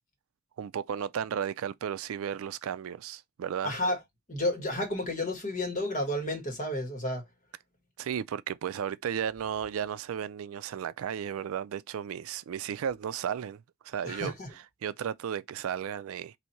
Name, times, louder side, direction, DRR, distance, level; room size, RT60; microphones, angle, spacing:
voice 1, 0.6-3.7 8.0-16.4, right 8 dB, 75° right, 0.3 m, -34 dB
voice 2, 3.6-4.0 4.3-7.2 14.0-14.5, left 1 dB, 35° left, 1.5 m, -31 dB
4.1 x 2.7 x 4.4 m
head